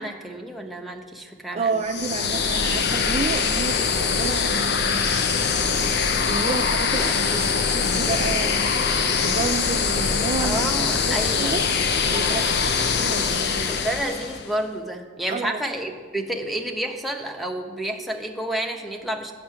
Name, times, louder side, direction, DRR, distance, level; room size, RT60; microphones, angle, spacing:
voice 1, 0.0-1.8 4.0-4.2 10.4-11.6 12.1-12.7 13.7-19.3, right 1 dB, ahead, 1 dB, 0.7 m, -30 dB
voice 2, 1.5-5.3 5.9-11.6 12.1-13.8 15.3-15.6, right 4 dB, 35° right, 7 dB, 0.3 m, -31 dB
sound 1, 1.8-14.5, left 5 dB, 60° left, 0.6 m, -23 dB
8.6 x 5.8 x 7.6 m, 1.5 s
head